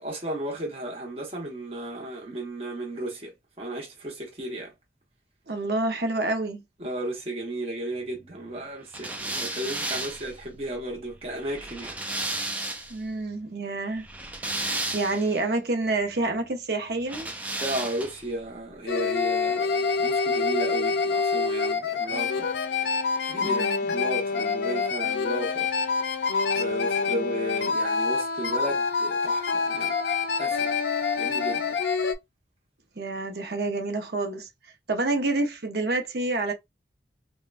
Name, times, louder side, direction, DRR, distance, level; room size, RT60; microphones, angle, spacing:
voice 1, 0.0-4.7 6.8-12.0 17.6-22.5 23.2-25.7 26.6-30.0 30.4-30.8 31.2-31.8, right 1 dB, 35° right, 0.8 m, -34 dB
voice 2, 5.5-6.6 12.9-14.1 14.4-17.3 23.4-23.8 27.1-27.2 33.0-34.5 34.9-36.5, right 2 dB, 65° right, 0.7 m, -28 dB
sound 1, 8.9-13.0 14.0-15.4 17.0-18.3, right 2 dB, 10° right, 0.4 m, -33 dB
sound 2, 18.9-32.1, left 5 dB, 75° left, 0.5 m, -26 dB
3.6 x 2.2 x 2.4 m
head